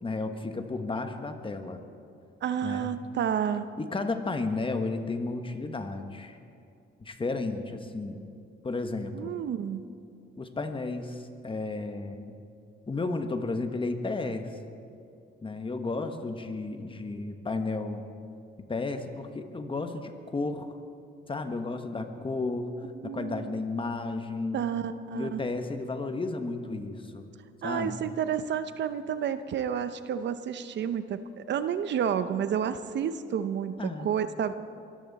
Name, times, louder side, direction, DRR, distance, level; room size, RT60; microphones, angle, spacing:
voice 1, 0.0-1.9 2.6-2.9 3.8-6.4 7.0-8.2 8.6-9.3 10.4-12.3 12.9-14.5 15.4-18.1 18.7-20.7 21.3-22.7 23.0-24.6 25.1-27.3 27.6-28.0 33.8-34.2, left 3 dB, 25° left, 7 dB, 1.3 m, -33 dB
voice 2, 2.4-3.7 9.1-9.9 23.0-23.6 24.5-25.4 27.6-34.5, right 8 dB, 65° right, 11 dB, 0.7 m, -30 dB
23.0 x 14.0 x 4.2 m, 2.5 s
cardioid pair, 90°, 20 cm